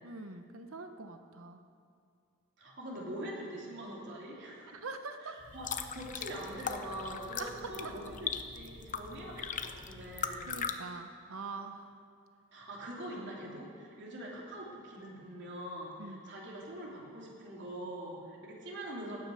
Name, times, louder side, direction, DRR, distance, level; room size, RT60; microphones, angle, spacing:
voice 1, 0.0-1.6 4.8-5.4 7.4-7.7 10.5-11.9 16.0-16.3, right 3 dB, 75° right, 7 dB, 1.0 m, -43 dB
voice 2, 2.6-4.8 5.2-5.7 5.9-8.3 8.5-10.5 12.5-19.2, right 1 dB, 60° right, -3 dB, 3.1 m, -43 dB
sound 1, 5.4-10.7, left 6 dB, 40° left, 0.7 m, -39 dB
17.0 x 9.3 x 6.4 m, 2.3 s
head